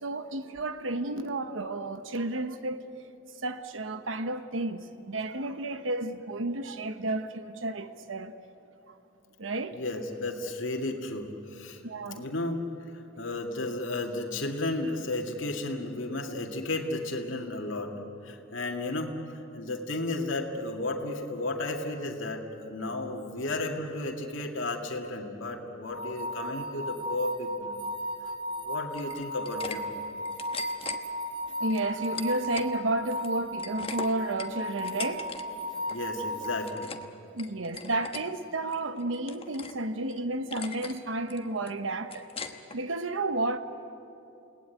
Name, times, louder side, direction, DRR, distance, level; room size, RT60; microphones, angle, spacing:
voice 1, 0.0-2.8 3.4-8.3 8.9-9.0 9.4-9.8 11.8-12.2 31.4-35.3 37.3-42.3 42.7-43.6, right 2 dB, 85° right, 1.1 m, -32 dB
voice 2, 9.7-12.7 12.9-17.9 18.2-27.8 28.6-29.9 35.9-36.9, left 2 dB, 85° left, 2.2 m, -33 dB
sound 1, 25.9-36.7, equal, 25° right, 2.1 m, -35 dB
sound 2, 28.9-29.8 30.1-31.0 31.7-32.7 33.1-35.4 35.7-36.0 36.4-37.1 37.4-38.2 38.7-39.8 40.1-40.2 40.5-41.0 41.3-42.8, left 5 dB, 30° left, 1.2 m, -40 dB
29.5 x 18.5 x 9.3 m
head